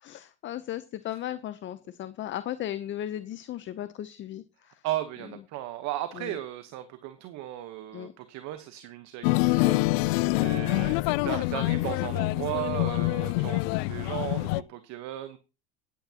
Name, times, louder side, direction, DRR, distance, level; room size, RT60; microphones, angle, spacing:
voice 1, 0.0-4.8 6.1-6.4 7.9-8.1 10.1-10.6, left 12 dB, 35° left, 13 dB, 0.8 m, -36 dB
voice 2, 4.8-9.8 10.4-15.4, right 14 dB, 55° right, 10 dB, 1.2 m, -36 dB
sound 1, 9.2-14.6, left 21 dB, 65° left, 0.5 m, -26 dB
17.0 x 10.0 x 2.9 m, 0.32 s
supercardioid pair, 105°, 33 cm